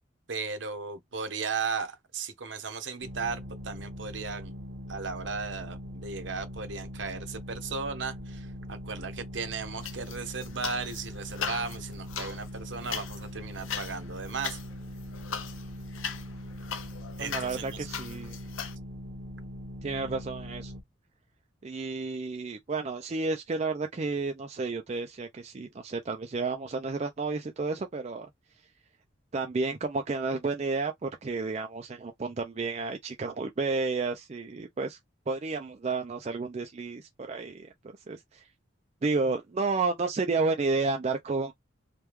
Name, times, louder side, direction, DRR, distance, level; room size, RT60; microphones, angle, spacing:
voice 1, 0.3-4.6 4.9-14.6 17.2-17.8, right 5 dB, 65° right, 0.8 m, -36 dB
sound 1, 3.0-20.8, equal, 80° right, 1.0 m, -41 dB
sound 2, 9.8-11.0 11.3-18.7, left 8 dB, 75° left, 0.6 m, -39 dB
voice 2, 17.2-18.4 19.8-20.7 21.6-28.3 29.3-35.0 35.3-37.7 38.1-38.4 39.0-41.5, right 3 dB, 30° right, 0.3 m, -31 dB
3.3 x 2.2 x 3.0 m
head